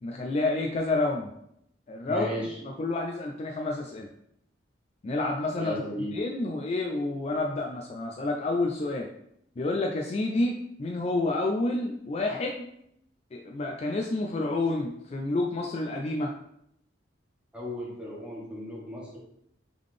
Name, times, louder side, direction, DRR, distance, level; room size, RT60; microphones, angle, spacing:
voice 1, 0.0-1.3 1.9-4.1 5.0-5.7 6.1-9.1 9.6-12.7 13.3-16.3, left 2 dB, 35° left, 1 dB, 0.3 m, -29 dB
voice 2, 2.1-2.6 5.6-6.1 17.5-19.2, equal, 5° right, -6 dB, 1.4 m, -35 dB
3.8 x 3.6 x 3.2 m, 0.74 s
head